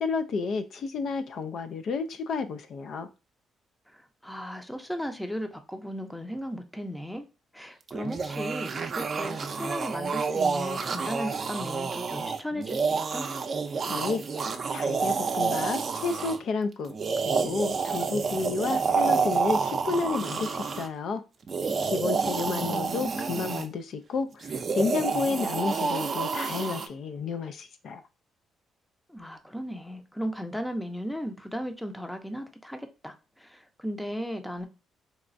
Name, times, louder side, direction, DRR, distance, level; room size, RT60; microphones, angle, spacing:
voice 1, 0.0-3.1 13.9-16.9 17.2-21.2 21.8-28.0, left 4 dB, 65° left, 0.3 m, -31 dB
voice 2, 3.9-7.2 7.5-13.3 22.5-23.6 29.1-34.7, equal, 5° left, 0.6 m, -36 dB
sound 1, 7.9-16.4 16.9-20.9 21.4-23.6 24.4-26.9, right 5 dB, 45° right, 0.5 m, -29 dB
4.0 x 2.2 x 2.5 m
cardioid pair, 90°, 0 cm